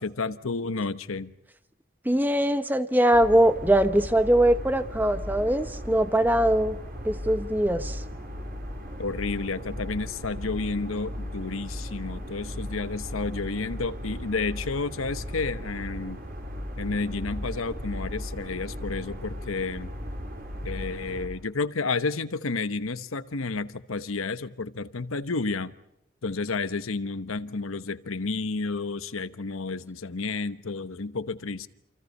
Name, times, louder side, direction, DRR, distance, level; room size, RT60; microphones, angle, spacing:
voice 1, 0.0-1.3 9.0-16.2 16.8-19.9 20.6-25.7 26.2-31.7, left 3 dB, 80° left, 1.0 m, -31 dB
voice 2, 2.0-6.8 7.0-8.0, right 1 dB, 10° right, 0.9 m, -22 dB
sound 1, 3.1-21.3, equal, 45° right, 4.5 m, -36 dB
28.5 x 27.5 x 5.5 m
head